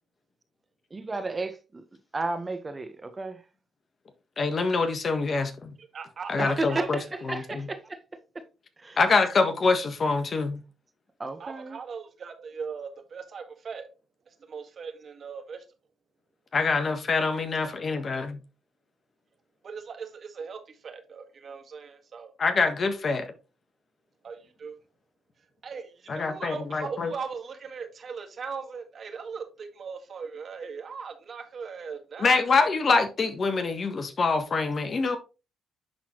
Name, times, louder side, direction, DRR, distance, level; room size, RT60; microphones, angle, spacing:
voice 1, 0.9-1.5 2.1-3.4 6.4-7.0 7.3-8.0 8.8-9.0 11.2-11.8, right 2 dB, 30° right, 1.3 m, -32 dB
voice 2, 4.4-5.7 6.3-7.7 9.0-10.6 16.5-18.4 22.4-23.3 26.1-27.1 32.2-35.2, left 4 dB, 50° left, 1.5 m, -25 dB
voice 3, 5.8-7.0 11.4-13.9 14.3-15.6 17.7-18.0 19.6-22.3 24.2-24.8 25.6-32.4, right 5 dB, 55° right, 1.7 m, -39 dB
10.5 x 4.1 x 3.1 m
supercardioid pair, 65°, 0 cm